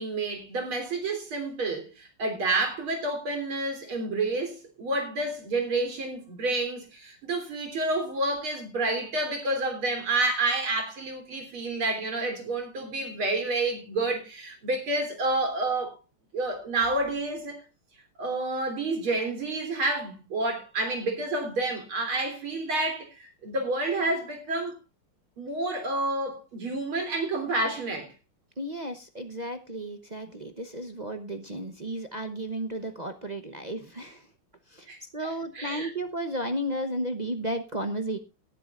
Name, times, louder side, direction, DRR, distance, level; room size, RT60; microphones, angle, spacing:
voice 1, 0.0-16.0 16.3-17.6 18.2-24.7 25.4-28.1 34.9-35.9, right 2 dB, 80° right, 4.2 m, -29 dB
voice 2, 28.6-34.3 34.7-38.2, right 1 dB, 40° right, 0.6 m, -33 dB
19.0 x 11.0 x 2.4 m
omnidirectional pair, 2.3 m